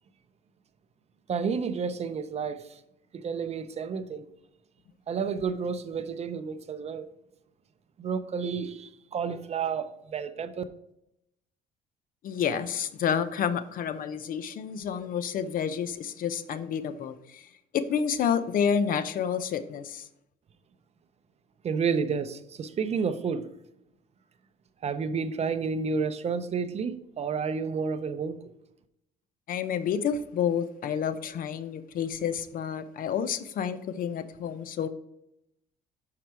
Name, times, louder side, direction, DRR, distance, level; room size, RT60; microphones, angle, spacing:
voice 1, 1.3-2.8 3.1-4.3 5.1-7.1 8.0-10.6 21.6-23.4 24.8-28.4, right 5 dB, 40° right, 11 dB, 0.6 m, -30 dB
voice 2, 12.2-17.5 17.7-20.1 29.5-34.9, left 7 dB, 55° left, 13 dB, 0.6 m, -29 dB
6.0 x 5.8 x 4.5 m, 0.80 s
cardioid pair, 110°, 17 cm